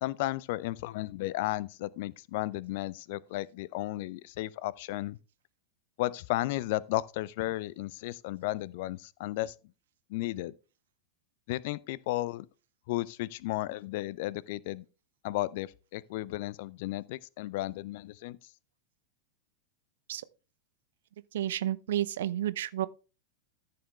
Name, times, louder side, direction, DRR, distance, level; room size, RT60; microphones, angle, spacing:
voice 1, 0.0-5.2 6.0-9.5 10.1-10.5 11.5-12.5 12.9-14.8 15.2-18.4, left 17 dB, 50° left, 0.4 m, -34 dB
voice 2, 21.3-22.9, right 12 dB, 60° right, 0.5 m, -31 dB
13.5 x 6.7 x 3.2 m
figure-of-eight pair, 90°, 0 cm